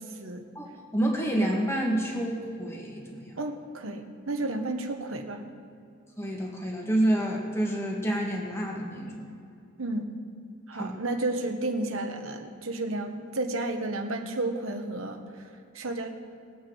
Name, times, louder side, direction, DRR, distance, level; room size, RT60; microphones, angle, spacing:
voice 1, 0.0-0.4 3.4-5.4 9.8-10.1 10.7-15.2 15.7-16.1, right 2 dB, 80° right, 5 dB, 1.2 m, -32 dB
voice 2, 0.6-3.3 6.2-9.3 10.7-10.9, right 1 dB, 15° left, -1 dB, 1.7 m, -28 dB
20.5 x 8.3 x 4.7 m, 2.4 s
head